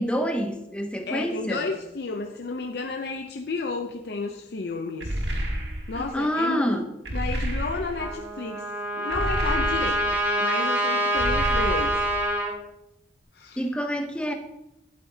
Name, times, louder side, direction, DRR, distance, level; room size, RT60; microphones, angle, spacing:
voice 1, 0.0-1.7 6.0-6.9 13.6-14.3, equal, 5° left, 5 dB, 0.7 m, -27 dB
voice 2, 1.1-5.3 5.9-6.7 7.1-8.6 8.9-12.0 13.3-13.6, left 3 dB, 65° left, 3 dB, 0.6 m, -32 dB
sound 1, 5.0-6.1 7.1-8.1 9.1-10.2 11.2-12.2, equal, 85° right, 1.5 m, -30 dB
Trumpet, 8.0-12.5, right 1 dB, 10° right, 2.1 m, -26 dB
11.5 x 8.4 x 2.7 m, 0.91 s
head